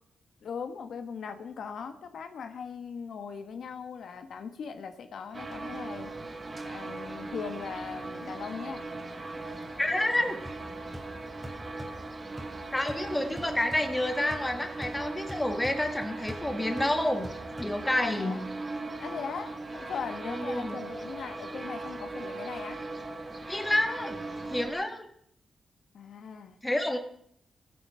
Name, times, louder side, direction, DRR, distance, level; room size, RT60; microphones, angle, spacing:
voice 1, 0.4-6.1 6.6-8.9 18.0-18.4 19.0-22.8 25.9-26.6, left 6 dB, 70° left, 8 dB, 1.3 m, -39 dB
sound 1, 5.3-24.7, right 2 dB, 30° right, 1.3 m, -39 dB
voice 2, 9.8-10.4 12.7-17.3 17.6-18.4 20.3-20.7 23.5-24.2 24.5-25.1 26.6-27.0, left 1 dB, 10° left, 6 dB, 1.8 m, -29 dB
sound 2, 10.5-18.2, equal, 5° right, 3.3 m, -46 dB
18.5 x 8.0 x 5.7 m, 0.69 s
wide cardioid pair, 125°, 0 cm